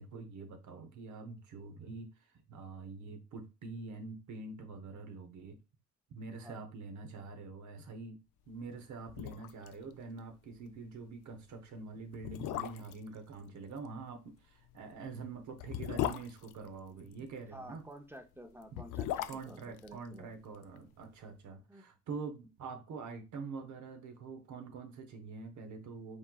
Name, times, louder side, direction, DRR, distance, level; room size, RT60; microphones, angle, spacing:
voice 1, 0.0-2.1 2.5-5.6 6.1-8.2 8.5-17.8 19.3-26.2, right 4 dB, 70° right, 1.0 m, -45 dB
sound 1, 8.7-8.8 9.1-9.7 10.0-10.1 10.5-10.7 11.4-11.5 12.1-13.1 14.6-17.3 18.5-20.8 21.0-21.1, left 12 dB, 85° left, 0.5 m, -38 dB
voice 2, 17.5-20.3 21.7-21.9, equal, 10° right, 0.7 m, -51 dB
5.2 x 3.9 x 2.3 m
cardioid pair, 90°, 30 cm